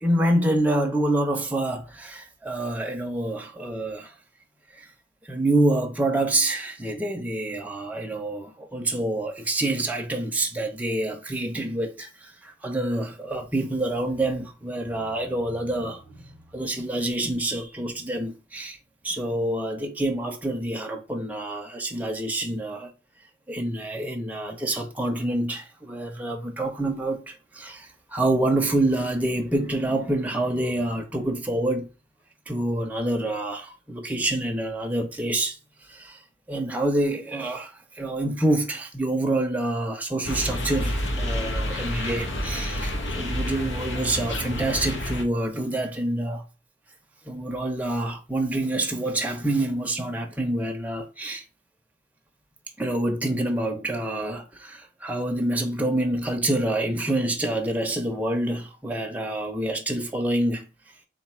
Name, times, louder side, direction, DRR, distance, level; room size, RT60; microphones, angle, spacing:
voice 1, 0.0-4.1 4.7-4.9 5.2-16.2 16.5-18.8 19.0-22.9 23.5-31.9 32.5-35.6 35.9-36.2 36.5-46.5 47.3-51.4 52.8-60.6, right 1 dB, 10° right, 0.5 m, -27 dB
sound 1, 40.2-45.2, equal, 90° left, 0.9 m, -29 dB
4.0 x 2.3 x 4.2 m
head